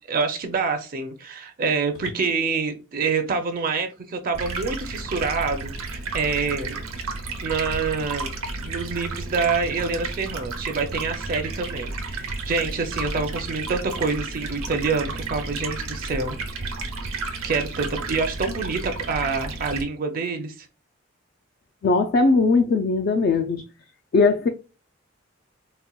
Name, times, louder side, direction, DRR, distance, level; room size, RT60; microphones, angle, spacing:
voice 1, 0.0-6.8 7.4-8.3 8.6-16.4 17.0-20.7, right 4 dB, 40° right, 0.5 m, -27 dB
Stream, 4.3-19.8, right 3 dB, 85° right, 0.8 m, -32 dB
voice 2, 21.8-23.6 24.1-24.5, left 3 dB, 45° left, 0.3 m, -19 dB
4.1 x 2.1 x 2.2 m
head